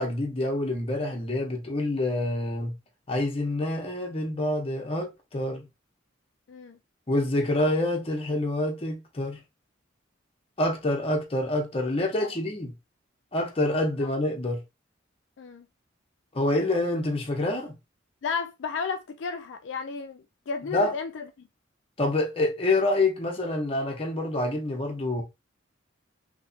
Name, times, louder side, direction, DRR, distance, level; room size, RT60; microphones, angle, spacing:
voice 1, 0.0-2.7 3.1-5.7 7.1-9.4 10.6-12.7 13.3-14.6 16.3-17.7 20.7-20.9 22.0-25.2, left 1 dB, 30° left, 0.8 m, -27 dB
voice 2, 6.5-6.8 12.2-12.3 15.4-15.7 18.2-21.5, left 5 dB, 70° left, 0.4 m, -33 dB
3.1 x 2.9 x 2.7 m
head